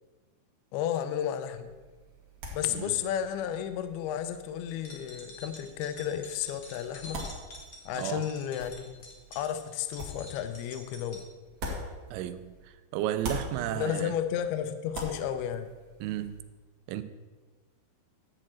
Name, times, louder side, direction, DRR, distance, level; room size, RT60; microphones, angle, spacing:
voice 1, 0.7-1.7 2.5-7.2 7.9-8.9 9.4-11.2 13.7-15.7, left 9 dB, 90° left, 2.2 m, -32 dB
sound 1, 1.5-12.7 13.0-16.4, equal, 55° right, 1.8 m, -44 dB
voice 2, 2.7-3.0 8.0-8.3 12.1-14.1 16.0-16.4 16.9-17.0, right 12 dB, 85° right, 2.9 m, -33 dB
sound 2, 4.7-11.2, left 2 dB, 65° left, 1.5 m, -48 dB
11.0 x 4.4 x 7.5 m
omnidirectional pair, 5.3 m